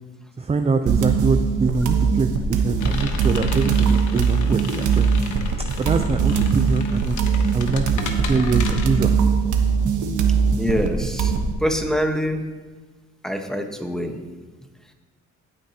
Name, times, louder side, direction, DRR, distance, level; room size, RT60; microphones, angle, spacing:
voice 1, 0.4-5.2 5.8-9.1, right 4 dB, 20° right, 7 dB, 0.5 m, -24 dB
sound 1, 0.9-11.5, right 5 dB, 75° right, 1.3 m, -21 dB
sound 2, 2.8-8.9, left 5 dB, 75° left, 1.3 m, -35 dB
voice 2, 10.6-11.3 11.6-12.5 13.2-14.2, equal, ahead, 4 dB, 1.2 m, -24 dB
16.0 x 9.0 x 2.9 m, 1.3 s
cardioid pair, 90°, 30 cm